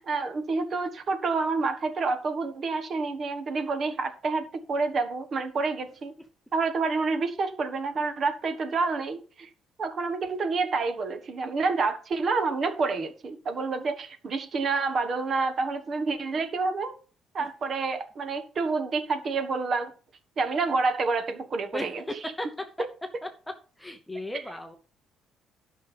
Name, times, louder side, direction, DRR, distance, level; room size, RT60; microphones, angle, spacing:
voice 1, 0.0-6.1 6.5-9.5 9.8-16.9 17.3-19.9 20.4-22.0, right 4 dB, 35° right, 8 dB, 1.4 m, -28 dB
voice 2, 22.2-22.6 23.8-24.8, left 1 dB, 5° left, 5 dB, 0.9 m, -35 dB
12.0 x 6.0 x 5.2 m, 0.38 s
cardioid pair, 165°, 0 cm